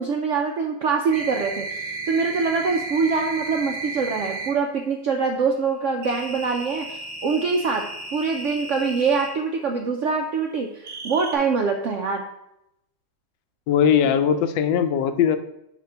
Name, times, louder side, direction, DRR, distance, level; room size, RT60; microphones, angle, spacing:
voice 1, 0.0-7.8 8.1-12.2, right 5 dB, 75° right, 2 dB, 0.7 m, -24 dB
sound 1, 1.1-4.5 6.0-9.3 10.8-11.3, right 3 dB, 55° right, 1.9 m, -34 dB
voice 2, 13.7-15.4, left 8 dB, 85° left, 10 dB, 1.3 m, -20 dB
5.0 x 4.5 x 5.5 m, 0.83 s
omnidirectional pair, 1.9 m